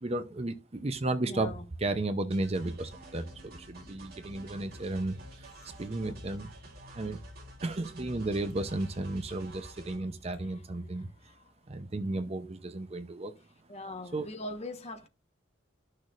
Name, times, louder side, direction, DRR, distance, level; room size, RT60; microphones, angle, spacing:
voice 1, 0.0-5.5 5.8-6.5 6.9-7.2 7.6-11.1 11.7-13.3 14.1-14.3, right 2 dB, 30° right, 0.6 m, -34 dB
voice 2, 1.2-1.7 10.4-11.4 13.7-15.1, left 2 dB, 35° left, 1.2 m, -42 dB
sound 1, 2.3-10.0, right 2 dB, 50° right, 2.7 m, -51 dB
sound 2, 2.9-11.5, left 2 dB, 5° right, 5.4 m, -52 dB
12.5 x 6.4 x 2.5 m
head